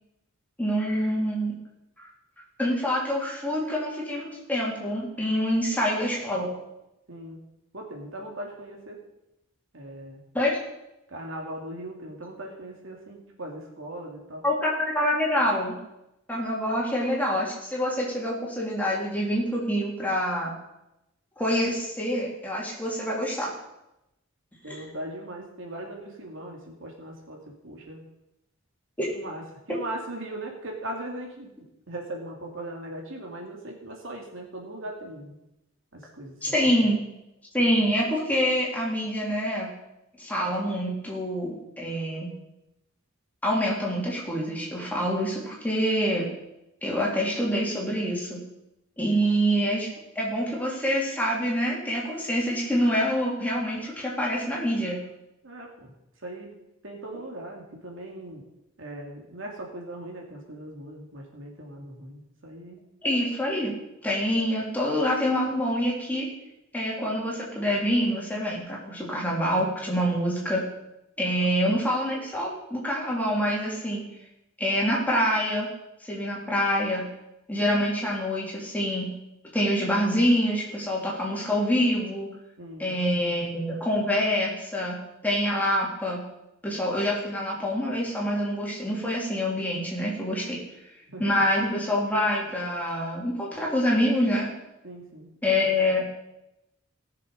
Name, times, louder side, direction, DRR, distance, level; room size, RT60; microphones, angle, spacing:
voice 1, 0.6-1.6 2.0-2.1 2.6-6.5 10.3-10.6 14.4-15.8 16.3-20.5 21.4-23.5 24.7-24.8 29.0-29.1 36.4-37.0 37.5-39.7 40.2-42.3 43.4-46.3 46.8-48.4 49.0-49.9 50.2-55.0 63.0-63.7 64.0-66.3 66.7-70.6 71.2-74.0 74.6-75.7 76.1-77.1 77.5-79.1 79.5-82.3 82.8-85.0 85.2-86.2 86.6-90.6 91.2-94.5 95.4-96.0, equal, 10° left, -4 dB, 3.6 m, -26 dB
voice 2, 7.1-7.4 7.7-9.0 9.7-10.2 11.1-14.4 24.6-28.0 29.1-29.4 29.7-31.5 31.9-35.4 35.9-36.4 36.8-36.9 55.4-55.9 56.2-56.5 56.8-58.4 58.8-62.8 82.6-82.9 91.1-91.4 94.8-95.3 95.6-95.7, right 1 dB, 65° right, 0 dB, 2.6 m, -39 dB
18.5 x 6.8 x 5.2 m, 0.90 s
head